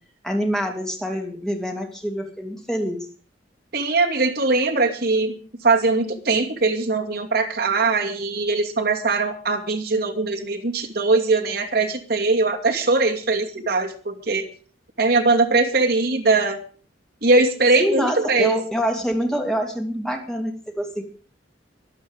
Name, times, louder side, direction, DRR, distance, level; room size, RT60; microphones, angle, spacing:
voice 1, 0.2-3.0 17.8-21.0, equal, 5° left, 2 dB, 2.7 m, -26 dB
voice 2, 3.7-5.3 5.6-14.5 15.0-16.6 17.2-18.6, right 3 dB, 60° right, 3 dB, 2.6 m, -21 dB
24.0 x 8.6 x 5.2 m, 0.41 s
head